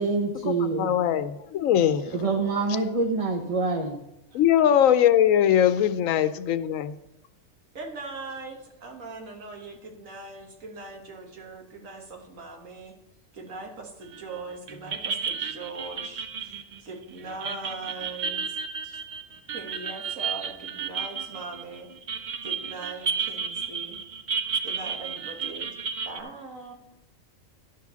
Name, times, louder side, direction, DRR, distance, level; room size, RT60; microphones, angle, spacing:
voice 1, 0.0-1.0 2.1-4.0, right 3 dB, 30° right, 2 dB, 0.9 m, -26 dB
voice 2, 0.8-2.0 4.3-6.9, left 10 dB, 80° left, 12 dB, 1.0 m, -21 dB
voice 3, 2.0-2.5 4.3-4.4 7.7-12.9 13.3-18.6 18.8-19.0 19.5-21.9 22.4-24.0 24.6-25.8 26.1-26.7, right 3 dB, 80° right, 2 dB, 1.9 m, -40 dB
sound 1, 14.1-14.4 14.7-26.2, right 6 dB, 55° right, 0.5 m, -33 dB
11.5 x 4.7 x 6.9 m, 0.89 s
omnidirectional pair, 1.4 m